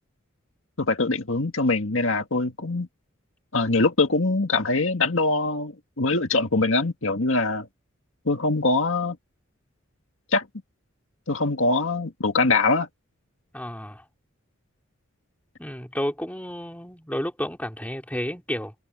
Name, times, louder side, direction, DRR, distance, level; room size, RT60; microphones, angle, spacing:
voice 1, 0.8-2.9 3.5-7.7 8.3-9.2 10.3-10.5 11.3-12.9, left 3 dB, 65° left, 2.0 m, -23 dB
voice 2, 13.5-14.0 15.6-18.7, equal, 5° left, 3.6 m, -31 dB
head